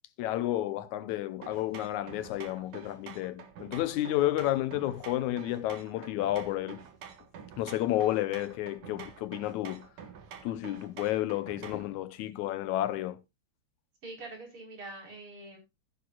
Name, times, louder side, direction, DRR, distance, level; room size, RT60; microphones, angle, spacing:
voice 1, 0.2-6.9 7.6-9.9 10.4-13.2, left 14 dB, 80° left, 2.2 m, -31 dB
sound 1, 1.4-12.0, right 7 dB, 75° right, 3.0 m, -48 dB
voice 2, 14.0-15.6, right 2 dB, 45° right, 5.2 m, -44 dB
15.0 x 9.7 x 2.4 m
omnidirectional pair, 3.4 m